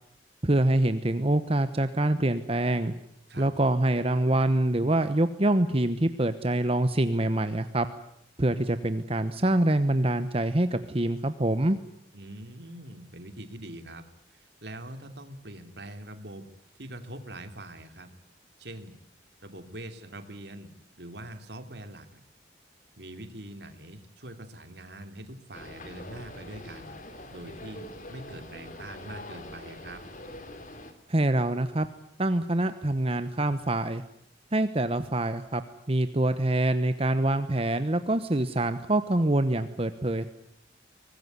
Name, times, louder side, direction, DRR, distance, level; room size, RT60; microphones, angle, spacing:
voice 1, 0.4-2.9 3.4-7.9 8.4-11.8 31.1-31.9 32.2-34.0 34.5-35.6 35.9-40.3, right 1 dB, 35° right, 11 dB, 1.0 m, -25 dB
voice 2, 12.1-14.0 14.3-16.4 16.8-18.1 18.6-19.0 19.4-22.2 23.0-27.0 27.3-30.0, right 1 dB, 65° right, 7 dB, 2.8 m, -43 dB
sound 1, 25.5-30.9, left 1 dB, 45° left, 3.1 m, -44 dB
24.0 x 19.5 x 9.5 m, 0.73 s
head